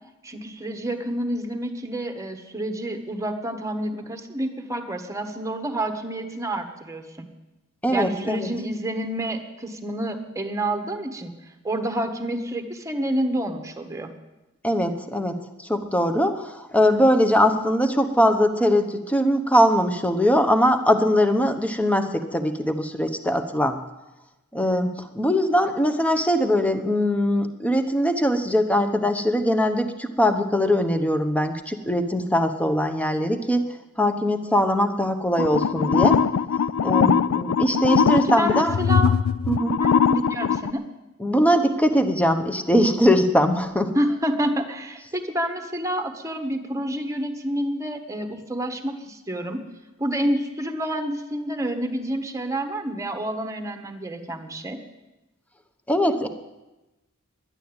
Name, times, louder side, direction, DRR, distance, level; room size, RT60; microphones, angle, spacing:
voice 1, 0.2-7.3 7.9-11.3 11.6-14.1 38.1-39.1 39.8-40.9 43.9-49.6 50.0-54.8, right 1 dB, 15° right, 6 dB, 1.2 m, -28 dB
voice 2, 7.8-8.5 14.6-15.4 15.7-23.8 24.5-33.7 34.0-36.2 36.8-38.8 39.5-39.8 41.2-43.9 55.9-56.3, equal, 5° left, 8 dB, 0.9 m, -21 dB
sound 1, 35.4-40.7, left 7 dB, 65° left, 0.4 m, -21 dB
11.0 x 10.5 x 8.8 m, 1.0 s
head